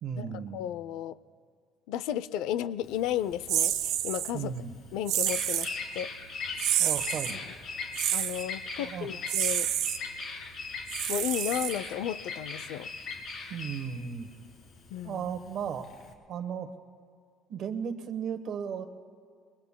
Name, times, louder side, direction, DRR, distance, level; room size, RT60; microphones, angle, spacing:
voice 1, 0.0-0.6 4.3-4.7 6.8-7.4 8.8-9.1 13.5-14.3 15.0-15.9 16.3-16.7 17.5-18.9, right 7 dB, 45° right, 8 dB, 1.0 m, -35 dB
voice 2, 0.5-1.2 1.9-4.5 4.9-5.7 5.9-6.1 7.3-7.4 8.1-9.7 11.1-12.9 14.9-15.3, left 11 dB, 80° left, 16 dB, 0.4 m, -33 dB
Bird vocalization bird call bird song, 2.9-16.1, left 4 dB, 45° left, 1.8 m, -39 dB
sound 1, 3.5-4.3 5.1-5.7 6.6-7.3 7.9-8.4 9.3-10.0 10.9-12.0, right 12 dB, 70° right, 0.7 m, -29 dB
27.5 x 23.0 x 2.2 m, 2.1 s
cardioid pair, 175°, 0 cm